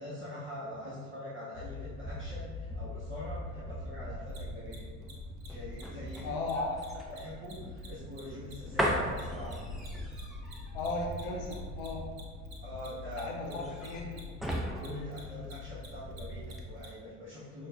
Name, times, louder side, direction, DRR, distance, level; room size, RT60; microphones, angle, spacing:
voice 1, 0.0-4.8 5.4-6.4 7.1-9.6 12.6-14.0 14.7-17.7, left 1 dB, 30° right, -10 dB, 1.4 m, -44 dB
sound 1, 1.5-16.7, left 2 dB, 55° left, 1.1 m, -44 dB
sound 2, 1.7-16.0 16.4-16.6, equal, ahead, 0.6 m, -39 dB
Mechanisms, 4.3-4.4 4.7-4.8 5.0-5.1 5.4-5.5 5.7-5.8 6.1-6.2 6.4-6.5 6.8-9.5 9.8-16.9, right 5 dB, 85° right, 0.8 m, -52 dB
voice 2, 6.2-7.2 10.7-12.1 13.2-14.3, left 2 dB, 75° left, 0 dB, 0.9 m, -36 dB
6.1 x 2.6 x 2.4 m, 1.5 s
hypercardioid pair, 60°, 39 cm